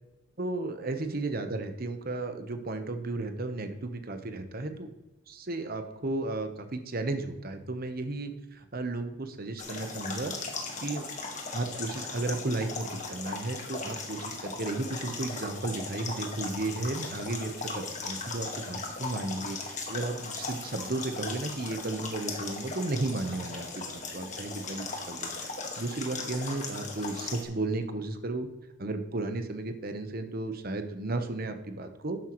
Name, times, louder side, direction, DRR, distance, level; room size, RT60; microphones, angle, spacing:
voice 1, 0.4-4.9 5.3-10.3 10.8-11.1 11.5-28.5 28.8-32.2, right 2 dB, 45° right, 8 dB, 1.0 m, -34 dB
sound 1, 9.6-27.4, left 3 dB, 35° left, 1.6 m, -38 dB
12.0 x 9.0 x 3.1 m, 1.1 s
head